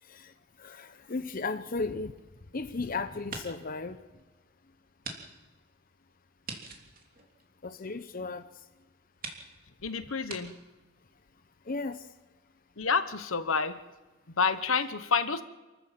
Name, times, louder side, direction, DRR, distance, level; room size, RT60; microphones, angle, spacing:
voice 1, 0.0-2.2 2.5-4.0 7.6-8.7 11.6-12.1, left 3 dB, 45° left, 0.8 m, -35 dB
sound 1, 1.8-2.8 3.1-3.8 4.2-4.3 5.0-5.2 5.5-5.6 6.4-8.0 8.7-8.8 9.2-9.4 10.3-10.4, right 4 dB, 45° right, 3.2 m, -43 dB
voice 2, 9.8-10.6 12.8-13.8 14.3-15.4, left 5 dB, 75° left, 1.1 m, -28 dB
28.5 x 14.0 x 7.5 m
head